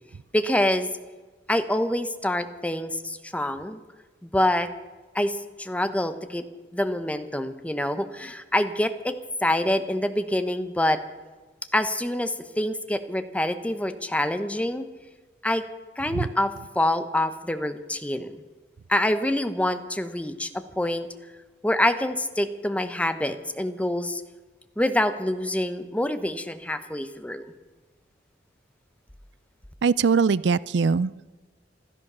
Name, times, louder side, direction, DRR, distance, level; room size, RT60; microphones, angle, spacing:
voice 1, 0.3-0.9 1.5-3.8 4.2-4.7 5.1-6.5 6.7-11.0 11.7-14.8 15.4-15.6 16.0-18.3 18.9-21.1 21.6-24.2 24.8-27.5, left 1 dB, 10° left, 10 dB, 0.9 m, -26 dB
voice 2, 29.8-31.3, right 5 dB, 70° right, 20 dB, 0.4 m, -22 dB
16.0 x 13.0 x 6.8 m, 1.3 s
head